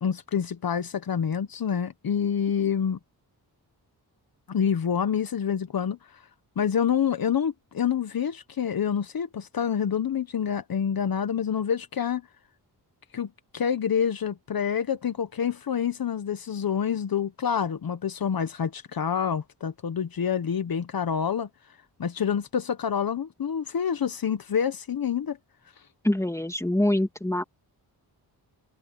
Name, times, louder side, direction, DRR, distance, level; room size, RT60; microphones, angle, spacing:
voice 1, 0.0-3.0 4.5-6.2 6.6-12.2 13.1-21.5 22.0-25.4, left 8 dB, 60° left, 1.2 m, -27 dB
voice 2, 26.0-27.4, left 1 dB, 5° left, 2.7 m, -24 dB
wide cardioid pair, 90°, 40 cm